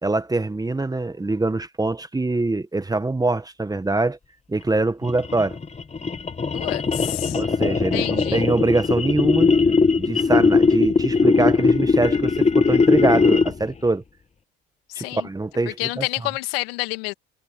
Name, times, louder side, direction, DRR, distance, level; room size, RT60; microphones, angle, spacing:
voice 1, 0.0-4.2 4.5-5.6 7.3-9.5 10.0-14.0 14.9-16.0, right 2 dB, 15° right, 1.4 m, -24 dB
sound 1, 5.0-13.7, left 4 dB, 25° left, 1.7 m, -19 dB
voice 2, 6.5-7.4 7.9-8.5 14.9-15.3 15.8-17.1, left 21 dB, 90° left, 2.1 m, -28 dB
supercardioid pair, 85°, 29 cm